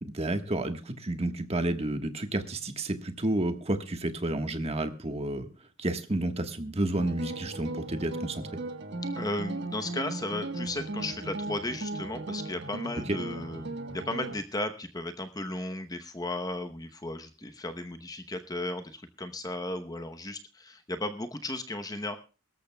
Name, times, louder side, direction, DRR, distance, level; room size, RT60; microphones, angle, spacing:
voice 1, 0.0-5.5 5.8-8.4 13.1-13.2, right 1 dB, 30° right, 7 dB, 1.4 m, -30 dB
sound 1, 7.0-14.3, right 2 dB, 55° right, 1.4 m, -37 dB
voice 2, 9.2-22.2, left 2 dB, 15° left, 7 dB, 0.8 m, -35 dB
23.5 x 13.5 x 2.3 m, 0.34 s
head